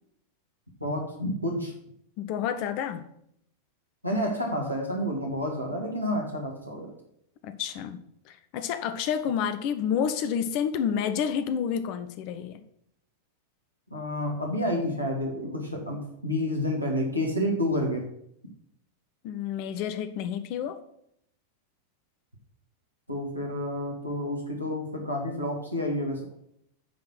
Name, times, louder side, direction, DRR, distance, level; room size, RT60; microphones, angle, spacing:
voice 1, 0.8-1.7 4.0-6.9 13.9-18.1 23.1-26.2, left 1 dB, 90° right, 0 dB, 1.7 m, -29 dB
voice 2, 2.2-3.0 7.4-8.0 8.3-12.6 19.2-20.8, left 8 dB, 45° left, 11 dB, 0.7 m, -29 dB
9.5 x 3.9 x 6.1 m, 0.71 s
figure-of-eight pair, 90°, 0 cm